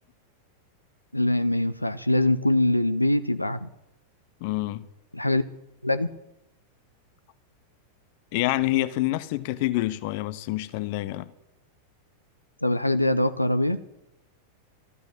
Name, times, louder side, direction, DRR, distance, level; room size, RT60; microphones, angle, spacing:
voice 1, 1.1-3.7 5.1-5.4 5.8-6.1 12.6-13.8, left 1 dB, 85° left, 0.6 m, -23 dB
voice 2, 4.4-4.9 8.3-11.3, left 17 dB, 45° left, 0.7 m, -27 dB
13.5 x 8.4 x 9.0 m
figure-of-eight pair, 90°, 0 cm